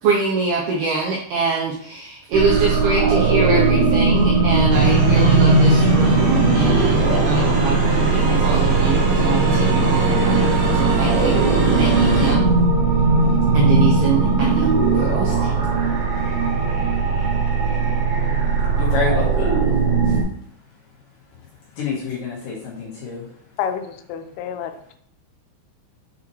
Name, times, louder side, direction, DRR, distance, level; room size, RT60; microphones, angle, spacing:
voice 1, 0.0-12.5 13.5-15.5, right 4 dB, 85° right, -2 dB, 2.2 m, -24 dB
sound 1, 2.3-20.2, right 4 dB, 65° right, 2.9 m, -18 dB
sound 2, 4.7-12.3, right 1 dB, 35° right, 2.8 m, -22 dB
voice 2, 18.8-20.2 21.8-23.3, left 6 dB, 65° left, -4 dB, 2.3 m, -28 dB
voice 3, 23.6-24.9, left 8 dB, 85° left, 7 dB, 3.2 m, -29 dB
7.3 x 6.0 x 3.2 m, 0.65 s
omnidirectional pair, 5.7 m